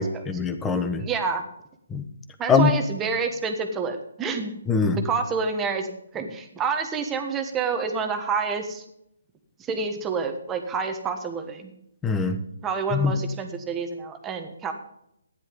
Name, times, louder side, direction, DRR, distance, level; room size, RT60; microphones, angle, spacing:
voice 1, 0.0-1.0 1.9-2.0 2.5-2.7 4.7-5.0 12.0-12.4 12.9-13.1, left 5 dB, 10° left, 8 dB, 1.2 m, -22 dB
voice 2, 1.0-1.4 2.4-4.5 4.9-8.8 9.6-11.7 12.6-14.7, right 5 dB, 15° right, 5 dB, 1.4 m, -28 dB
13.0 x 10.5 x 5.3 m, 0.78 s
hypercardioid pair, 155°, 0 cm